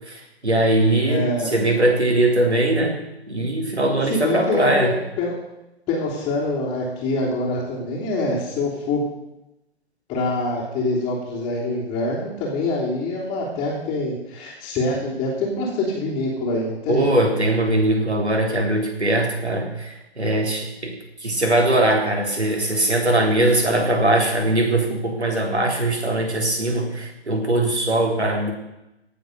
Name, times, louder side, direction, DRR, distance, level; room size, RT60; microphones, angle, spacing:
voice 1, 0.1-2.9 3.3-5.0 16.9-20.9 21.2-28.5, right 1 dB, 80° right, 2 dB, 3.9 m, -21 dB
voice 2, 1.0-1.5 4.0-5.3 5.9-9.0 10.1-17.1, left 2 dB, 20° left, -8 dB, 3.2 m, -25 dB
17.5 x 7.6 x 6.6 m, 0.93 s
figure-of-eight pair, 130°, 33 cm